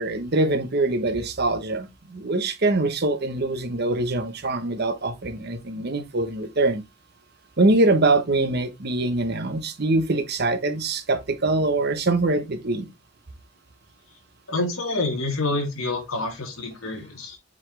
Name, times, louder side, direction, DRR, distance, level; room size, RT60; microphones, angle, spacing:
voice 1, 0.0-6.8 7.6-12.9, right 2 dB, 50° right, 0.9 m, -23 dB
voice 2, 14.5-17.4, left 2 dB, 85° left, 2.4 m, -27 dB
7.5 x 4.2 x 3.2 m
head